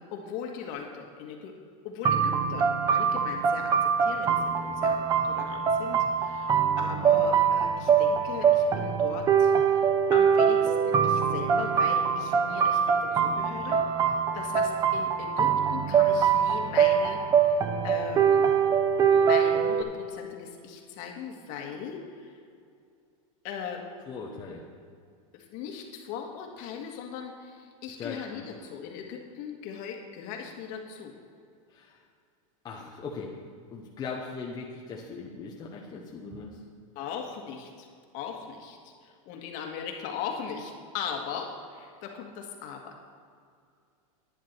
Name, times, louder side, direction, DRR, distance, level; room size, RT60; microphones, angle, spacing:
voice 1, 0.0-1.6 1.8-18.4 19.0-22.4 23.4-23.9 25.3-31.1 37.0-37.9 38.1-43.0, left 7 dB, 50° left, 2 dB, 1.7 m, -39 dB
sound 1, 2.0-19.8, right 7 dB, 20° right, 0.7 m, -24 dB
voice 2, 24.1-24.7 28.0-28.4 31.7-32.0 32.6-33.3 33.7-36.6, left 4 dB, 25° left, -2 dB, 1.0 m, -39 dB
11.0 x 9.9 x 4.5 m, 2.3 s
supercardioid pair, 140°, 18 cm